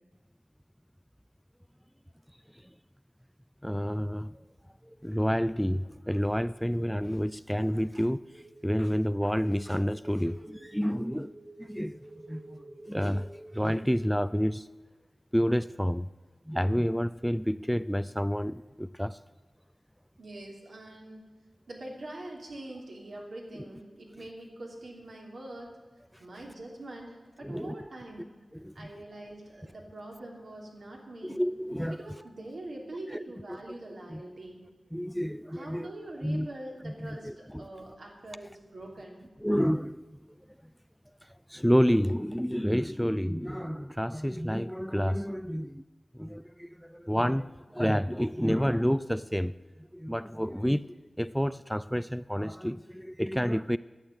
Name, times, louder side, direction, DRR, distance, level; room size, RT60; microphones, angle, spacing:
voice 1, 3.6-4.4 5.0-8.3 8.6-11.3 11.6-14.7 15.3-16.1 16.5-19.2 27.4-27.8 28.6-28.9 31.2-32.1 33.1-33.2 34.1-34.2 34.9-35.9 36.2-36.5 36.8-37.7 39.4-40.1 41.5-45.8 46.1-49.5 49.9-50.9 51.2-53.8, equal, ahead, 15 dB, 0.3 m, -29 dB
sound 1, 8.3-13.9, right 1 dB, 55° right, 3.9 m, -50 dB
voice 2, 20.2-21.2 21.7-25.8 26.2-28.3 28.7-31.4 31.9-34.6 35.5-39.3, right 1 dB, 80° right, -1 dB, 3.0 m, -44 dB
12.5 x 8.3 x 8.1 m, 1.3 s
wide cardioid pair, 60°, 0 cm